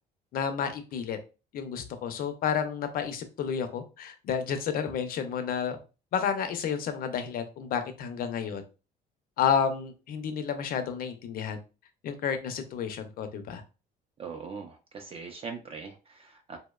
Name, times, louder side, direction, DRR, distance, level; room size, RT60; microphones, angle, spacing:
voice 1, 0.3-1.2 1.5-5.8 6.1-8.6 9.4-11.6 12.0-13.6, left 7 dB, 60° left, 8 dB, 0.5 m, -31 dB
voice 2, 14.2-16.6, right 5 dB, 35° right, 4 dB, 0.4 m, -41 dB
2.7 x 2.0 x 2.3 m, 0.32 s
cardioid pair, 110°, 17 cm